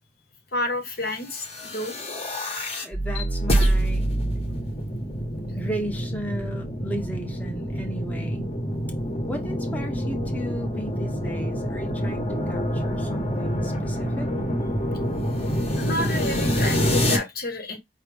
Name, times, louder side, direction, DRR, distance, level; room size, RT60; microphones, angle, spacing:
voice 1, 0.5-1.9 15.7-17.8, left 2 dB, 60° left, 1.2 m, -30 dB
sound 1, 1.4-17.2, equal, 35° left, 1.1 m, -26 dB
voice 2, 2.4-4.1 5.5-8.5 9.3-14.3, equal, 10° left, 0.8 m, -35 dB
5.0 x 2.8 x 3.3 m
head